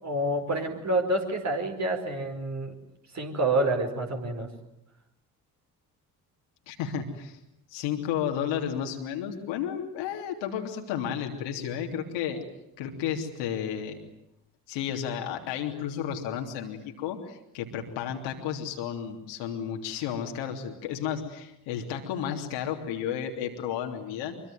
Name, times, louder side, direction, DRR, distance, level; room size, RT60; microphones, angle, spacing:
voice 1, 0.0-2.7 3.1-4.5, right 1 dB, 35° right, 4 dB, 5.0 m, -28 dB
voice 2, 6.7-7.4 7.7-12.4 12.8-14.0 14.7-24.3, left 9 dB, 65° left, 3 dB, 3.4 m, -32 dB
25.0 x 24.5 x 9.4 m, 0.81 s
figure-of-eight pair, 45°, 48 cm